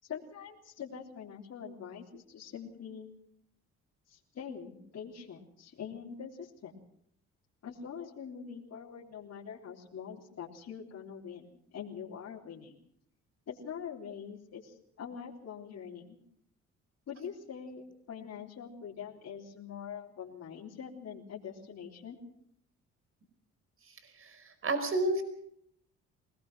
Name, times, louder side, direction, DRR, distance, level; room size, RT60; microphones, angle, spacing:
voice 1, 0.0-3.1 4.1-6.7 7.6-12.8 13.5-16.2 17.1-22.2, left 7 dB, 60° left, -4 dB, 3.6 m, -44 dB
voice 2, 24.2-25.2, right 2 dB, 45° right, 9 dB, 4.8 m, -31 dB
24.0 x 19.5 x 6.2 m, 0.70 s
cardioid pair, 90°, 30 cm